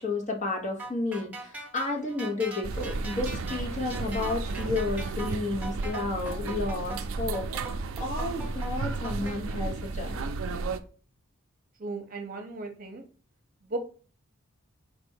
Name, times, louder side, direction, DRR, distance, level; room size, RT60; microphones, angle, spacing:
voice 1, 0.0-10.3, left 3 dB, 35° left, 1 dB, 1.1 m, -32 dB
sound 1, 0.8-9.4, right 2 dB, 5° right, 0.9 m, -41 dB
sound 2, 2.6-10.8, right 3 dB, 65° right, 0.4 m, -33 dB
voice 2, 11.8-13.0 13.6-13.8, right 3 dB, 40° right, 4 dB, 0.8 m, -36 dB
4.5 x 2.6 x 4.5 m, 0.38 s
head